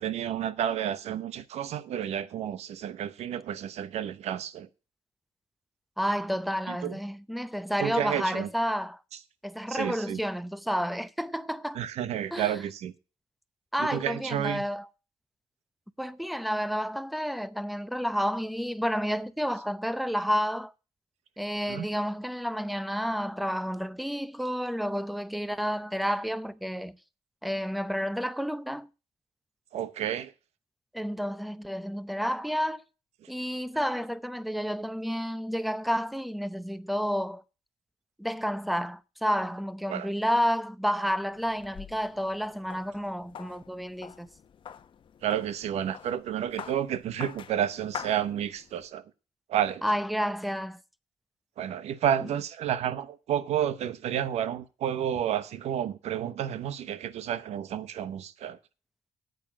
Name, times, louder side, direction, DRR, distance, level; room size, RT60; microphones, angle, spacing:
voice 1, 0.0-4.7 6.7-7.0 7.8-8.5 9.7-10.2 11.7-12.9 13.8-14.6 21.7-21.9 29.7-30.3 39.9-40.1 45.2-49.0 49.5-49.8 51.6-58.6, right 10 dB, 80° right, 0.9 m, -31 dB
voice 2, 6.0-9.0 9.4-11.8 12.3-12.6 13.7-14.9 16.0-20.7 21.4-27.0 27.4-28.9 30.9-32.8 33.3-37.4 38.2-44.3 49.8-50.8, equal, ahead, 0.7 m, -30 dB
sound 1, 41.3-48.9, left 8 dB, 50° left, 0.9 m, -46 dB
9.0 x 8.1 x 7.3 m
cardioid pair, 105°, 11 cm